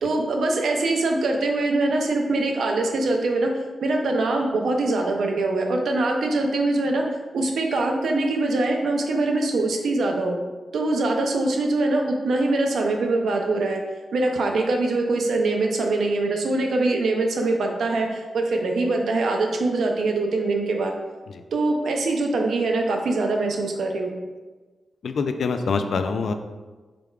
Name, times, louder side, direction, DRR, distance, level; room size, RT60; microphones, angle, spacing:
voice 1, 0.0-3.5 3.8-7.0 7.3-10.4 10.7-13.8 14.1-20.9 21.5-24.1, right 2 dB, 75° right, 2 dB, 0.6 m, -23 dB
voice 2, 25.0-26.3, left 4 dB, 65° left, 7 dB, 0.3 m, -24 dB
5.0 x 4.5 x 2.4 m, 1.3 s
wide cardioid pair, 155°, 0 cm